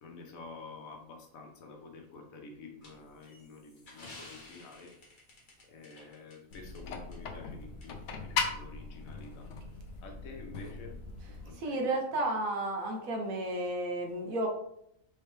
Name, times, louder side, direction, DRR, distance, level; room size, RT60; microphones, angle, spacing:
voice 1, 0.0-4.9 5.7-9.5 10.0-11.0 11.4-12.3, left 3 dB, 90° left, 2 dB, 1.3 m, -49 dB
sound 1, 2.8-6.8 7.1-7.2 7.8-7.9, left 2 dB, 40° left, 1.0 m, -53 dB
sound 2, 6.5-11.5, left 5 dB, 65° left, 0.9 m, -39 dB
voice 2, 11.2-14.5, right 2 dB, 85° right, 2 dB, 1.3 m, -33 dB
4.6 x 3.2 x 3.3 m, 0.77 s
omnidirectional pair, 1.4 m